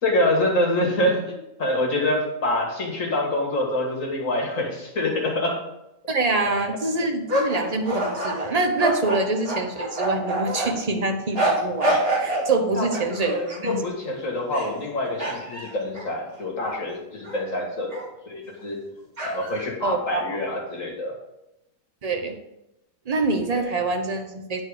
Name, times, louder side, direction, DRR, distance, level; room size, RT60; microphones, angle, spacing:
voice 1, 0.0-5.6 6.4-6.5 12.8-18.8 19.2-21.1 23.5-23.6, left 1 dB, 45° left, -1 dB, 2.1 m, -26 dB
voice 2, 6.1-13.8 19.8-20.2 22.0-22.4 23.1-24.6, right 3 dB, 55° right, 4 dB, 0.4 m, -25 dB
sound 1, 7.3-10.7 11.4-12.5 12.9-13.7 14.4-14.9 15.2-16.8 17.2-17.4 17.9-18.1 19.2-19.6, right 1 dB, 35° right, 2.7 m, -27 dB
9.5 x 4.5 x 4.9 m, 0.90 s
omnidirectional pair, 1.9 m